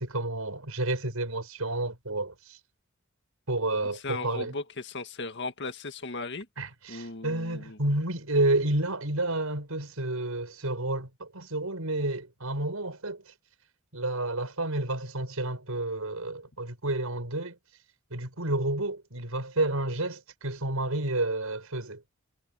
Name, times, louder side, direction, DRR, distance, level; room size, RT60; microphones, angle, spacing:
voice 1, 0.0-2.6 3.5-4.5 6.6-13.3 13.9-17.6 18.1-22.0, right 2 dB, 85° right, 5.4 m, -30 dB
voice 2, 3.9-6.5 6.9-7.8, left 3 dB, 55° left, 1.9 m, -37 dB
head